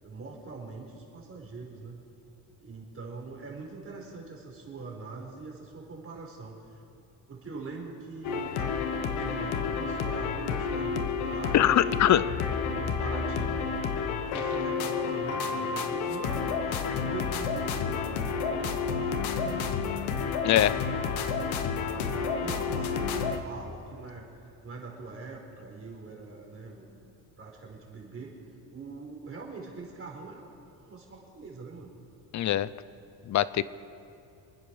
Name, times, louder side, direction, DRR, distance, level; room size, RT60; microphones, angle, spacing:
voice 1, 0.0-2.0 2.6-6.8 7.3-8.7 9.1-11.7 12.2-13.8 14.3-18.1 18.4-19.9 20.7-27.0 27.4-28.3 28.7-30.5 30.8-32.0, right 4 dB, 30° right, -2 dB, 4.7 m, -43 dB
sound 1, 8.2-23.4, left 5 dB, 90° left, 1.3 m, -30 dB
voice 2, 11.5-12.2 20.4-20.7 32.3-32.7 33.3-33.6, left 12 dB, 40° left, 17 dB, 0.6 m, -22 dB
29.0 x 10.0 x 4.8 m, 2.8 s
cardioid pair, 110°, 46 cm